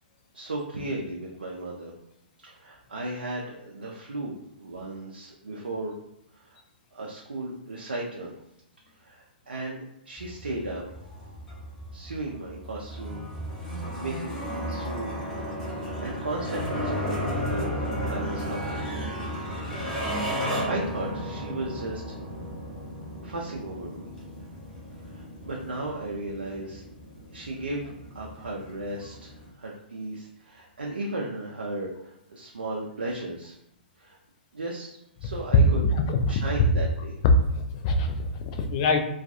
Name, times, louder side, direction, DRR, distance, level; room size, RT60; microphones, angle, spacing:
voice 1, 0.3-1.9 2.4-5.9 6.3-6.6 6.9-8.4 9.0-9.8 10.1-10.8 11.9-13.3 13.5-15.1 15.7-19.0 20.1-22.2 23.2-24.1 25.1-26.8 27.3-33.5 34.0-34.2 34.5-35.8 36.3-37.2, right 2 dB, 75° right, -2 dB, 0.4 m, -35 dB
sound 1, 10.2-29.5, equal, 10° left, 0.8 m, -34 dB
voice 2, 35.7-36.4 37.5-39.0, left 3 dB, 35° left, 4 dB, 0.4 m, -26 dB
2.3 x 2.3 x 2.6 m, 0.85 s
figure-of-eight pair, 115°, 6 cm